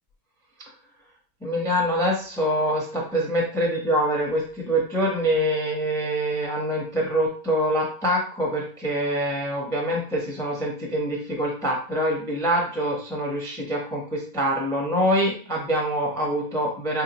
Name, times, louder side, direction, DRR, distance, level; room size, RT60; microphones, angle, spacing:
voice 1, 1.4-17.0, equal, 5° left, 0 dB, 0.6 m, -25 dB
5.0 x 2.6 x 2.9 m, 0.42 s
omnidirectional pair, 1.8 m